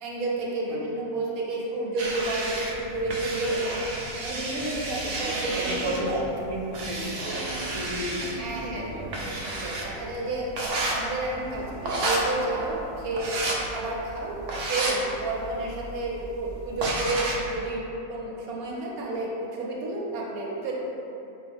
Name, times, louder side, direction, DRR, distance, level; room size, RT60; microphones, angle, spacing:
voice 1, 0.0-3.9 4.2-6.2 8.4-8.8 9.2-10.5 10.8-14.4 14.7-20.7, right 2 dB, 85° right, -3 dB, 1.2 m, -31 dB
sound 1, 2.0-17.5, right 1 dB, 65° right, 0.9 m, -32 dB
voice 2, 5.0-9.4 11.5-11.8, right 1 dB, 45° right, -5 dB, 0.3 m, -35 dB
5.4 x 2.4 x 3.5 m, 2.9 s
omnidirectional pair, 1.5 m